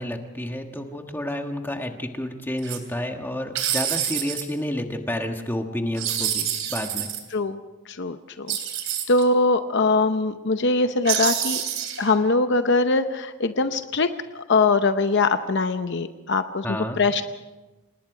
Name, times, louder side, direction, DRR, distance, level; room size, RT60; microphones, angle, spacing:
voice 1, 0.0-7.1 16.6-17.0, left 1 dB, 10° left, 4 dB, 1.4 m, -30 dB
sound 1, 2.6-2.8 3.5-4.4 5.9-7.2 8.5-9.2 11.0-12.1, right 10 dB, 65° right, 3.4 m, -27 dB
voice 2, 7.9-8.6 9.1-11.6 12.0-17.2, left 3 dB, 50° left, 9 dB, 0.7 m, -22 dB
27.0 x 19.5 x 4.9 m, 1.2 s
head